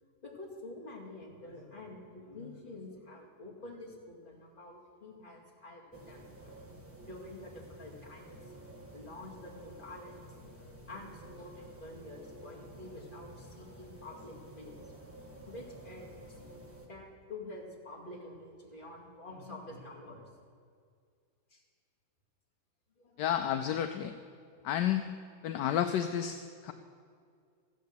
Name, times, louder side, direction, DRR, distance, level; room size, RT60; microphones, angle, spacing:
voice 1, 0.2-6.6 7.0-8.5 8.9-16.4 16.8-20.3 21.5-21.6 23.0-23.6 24.5-24.7, left 2 dB, 25° left, -3 dB, 2.3 m, -48 dB
sound 1, 5.9-16.9, right 1 dB, 10° right, 1.3 m, -51 dB
voice 2, 23.2-24.1 24.6-25.1 25.4-26.7, left 10 dB, 75° left, 8 dB, 1.1 m, -31 dB
14.5 x 9.3 x 6.8 m, 2.1 s
omnidirectional pair, 2.1 m